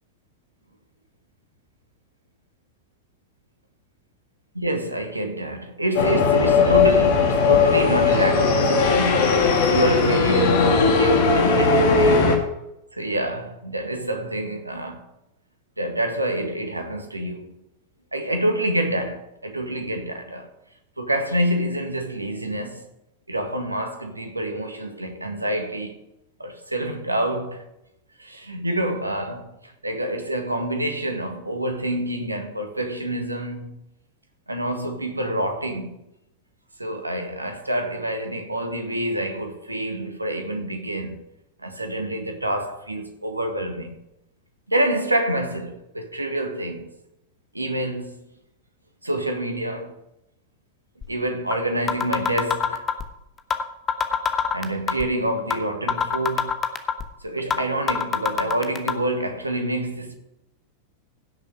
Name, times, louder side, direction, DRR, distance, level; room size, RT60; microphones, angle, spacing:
voice 1, 4.5-12.4 12.9-15.1 15.8-17.5 18.1-20.5 21.0-22.9 23.3-26.0 26.4-27.7 28.2-33.8 34.5-36.0 36.8-41.2 41.6-44.0 44.7-46.9 47.5-48.2 49.0-50.0 51.1-52.8 54.5-56.6 57.2-60.2, right 1 dB, 85° right, 1.7 m, -27 dB
sound 1, 5.9-12.4, left 4 dB, 55° left, 2.3 m, -18 dB
sound 2, 51.0-51.1 51.5-51.6 51.9-53.1 53.5-53.6 53.9-55.1 55.5-55.6 55.9-57.1 57.5-57.6 57.9-58.9, left 7 dB, 25° left, 1.1 m, -23 dB
16.0 x 6.6 x 4.9 m
figure-of-eight pair, 90°, 0 cm